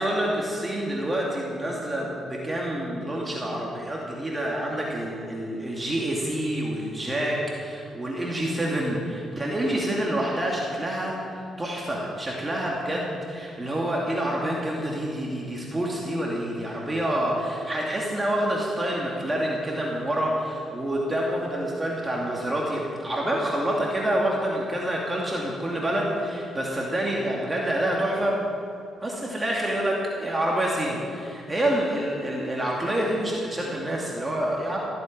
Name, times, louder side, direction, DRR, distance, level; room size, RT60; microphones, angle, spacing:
voice 1, 0.0-28.4 29.0-34.8, right 1 dB, 20° right, -3 dB, 2.7 m, -27 dB
15.0 x 9.7 x 8.9 m, 2.5 s
cardioid pair, 90°, 0 cm